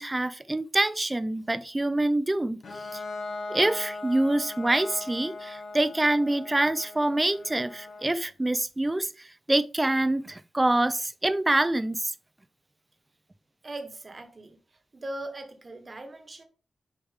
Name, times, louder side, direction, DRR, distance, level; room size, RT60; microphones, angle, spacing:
voice 1, 0.0-2.6 2.9-3.0 3.5-12.1, right 1 dB, 15° right, 0.5 m, -26 dB
Bowed string instrument, 2.6-8.2, left 3 dB, 75° left, 1.7 m, -39 dB
voice 2, 13.6-14.6 14.9-16.4, right 1 dB, 35° right, 1.2 m, -39 dB
6.3 x 4.7 x 3.6 m
wide cardioid pair, 110°, 0 cm